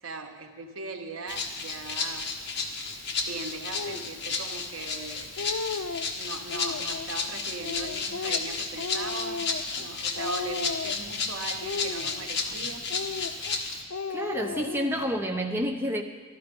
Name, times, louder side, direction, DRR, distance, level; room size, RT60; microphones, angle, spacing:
voice 1, 0.0-2.3 3.3-5.3 6.1-12.9, right 3 dB, 80° right, 4 dB, 1.2 m, -39 dB
Rattle (instrument), 1.3-13.8, left 4 dB, 55° left, 1.3 m, -33 dB
Speech, 3.7-4.1 4.8-4.9 5.2-6.1 6.5-7.1 7.6-9.9 10.2-11.1 11.6-12.5 12.9-13.6 13.9-15.1, left 4 dB, 85° left, 0.5 m, -35 dB
voice 2, 14.1-16.0, equal, 10° right, 2 dB, 0.7 m, -29 dB
13.0 x 12.5 x 5.3 m, 1.5 s
head